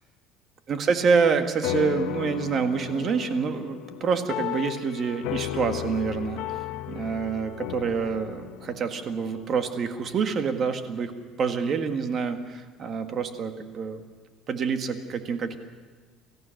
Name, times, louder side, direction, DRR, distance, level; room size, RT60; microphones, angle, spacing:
voice 1, 0.7-6.4 6.9-11.1 11.4-14.0 14.5-15.6, right 5 dB, 40° right, 7 dB, 1.7 m, -27 dB
sound 1, 1.6-10.3, left 14 dB, 75° left, 0.8 m, -35 dB
28.0 x 14.5 x 6.5 m, 1.4 s
cardioid pair, 130°, 0 cm